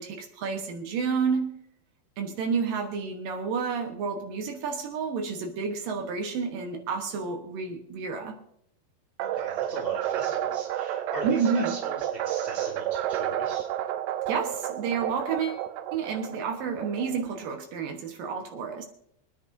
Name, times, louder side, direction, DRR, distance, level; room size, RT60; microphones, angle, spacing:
voice 1, 0.0-1.6 2.2-8.3 11.2-11.8 14.3-15.6 15.9-18.9, right 5 dB, 65° right, 3 dB, 2.6 m, -30 dB
voice 2, 9.2-13.7, right 2 dB, 55° left, -2 dB, 0.6 m, -40 dB
sound 1, 9.2-17.5, right 11 dB, 80° right, 2.6 m, -31 dB
26.0 x 9.6 x 2.7 m, 0.73 s
omnidirectional pair, 4.7 m